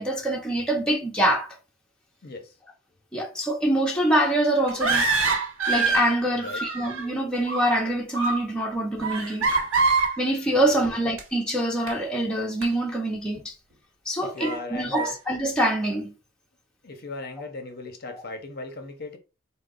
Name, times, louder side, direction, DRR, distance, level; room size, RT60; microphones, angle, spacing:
voice 1, 0.0-1.6 3.1-5.1 5.7-9.5 10.2-13.6 14.1-16.1 18.1-18.2, right 1 dB, 5° left, 0.6 m, -25 dB
voice 2, 2.2-2.5 6.3-6.6 10.5-10.9 14.2-15.1 16.8-19.2, left 3 dB, 45° left, 0.6 m, -37 dB
sound 1, 4.7-6.1 6.4-7.0 7.3-7.8 8.1-8.5 9.0-10.2 11.2-11.3 11.9-12.0 12.6-12.7 13.3-13.4 14.4-14.6 14.9-15.1, right 4 dB, 65° right, 1.0 m, -25 dB
3.8 x 2.0 x 3.7 m
head